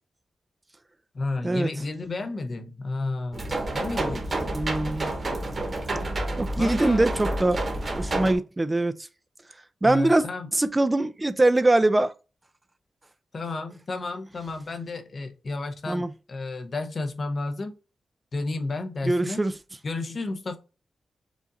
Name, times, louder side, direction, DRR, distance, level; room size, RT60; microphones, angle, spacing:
voice 1, 1.1-4.4 5.9-6.0 6.6-7.1 9.8-10.5 13.3-17.8 18.3-19.4 19.8-20.6, left 3 dB, 40° left, 0.8 m, -32 dB
sound 1, 3.3-8.3, right 1 dB, 35° right, 1.1 m, -29 dB
voice 2, 4.5-5.1 6.4-7.6 8.0-8.9 9.8-10.2 10.5-12.1 15.9-16.1 19.0-19.5, right 2 dB, 15° right, 0.4 m, -22 dB
4.9 x 2.5 x 4.0 m
wide cardioid pair, 140°, 0 cm